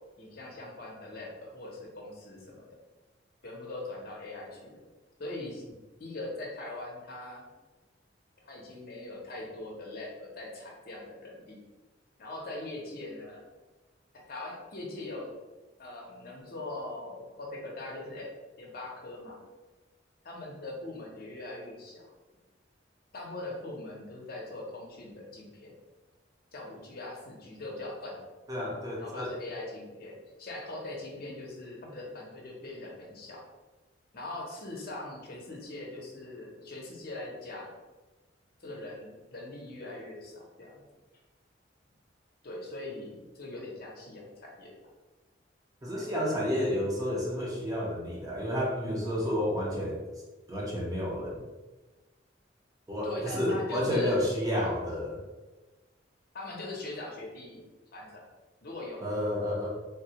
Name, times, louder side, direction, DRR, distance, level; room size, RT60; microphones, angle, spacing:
voice 1, 0.2-2.6 3.4-4.9 5.2-5.6 6.0-7.4 8.4-11.6 12.2-13.5 14.3-15.3 15.8-18.3 18.6-19.4 20.2-22.1 23.1-25.8 26.5-28.2 29.0-33.4 34.1-37.7 38.6-40.8 42.4-44.8 46.0-46.1 53.0-54.2 56.3-57.6 57.9-58.2 58.6-59.0, left 2 dB, 55° left, -2 dB, 0.7 m, -41 dB
voice 2, 28.5-29.3 45.8-50.0 50.5-51.4 52.9-55.2 59.0-59.7, equal, 20° right, -4 dB, 0.7 m, -30 dB
3.5 x 2.3 x 2.8 m, 1.2 s
head